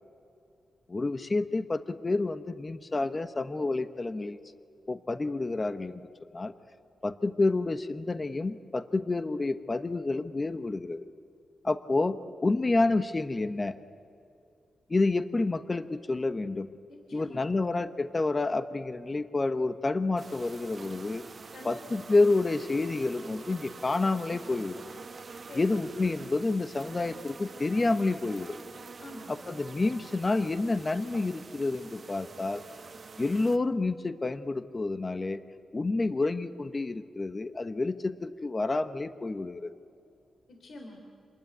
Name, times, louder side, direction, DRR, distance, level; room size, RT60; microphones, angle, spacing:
voice 1, 0.9-4.4 4.9-6.0 6.3-6.5 7.0-11.0 11.6-13.8 14.9-16.7 17.1-21.2 21.6-24.8 25.5-28.6 29.5-32.6 33.2-35.4 35.7-39.7, left 3 dB, 30° left, 11 dB, 1.0 m, -29 dB
voice 2, 16.9-17.6 21.5-22.2 25.4-25.9 29.0-29.6 40.5-41.0, left 1 dB, 70° left, 2 dB, 3.5 m, -47 dB
sound 1, 20.2-33.6, right 4 dB, 45° right, 1.2 m, -46 dB
27.5 x 21.0 x 9.7 m, 2.5 s
cardioid pair, 90°, 0 cm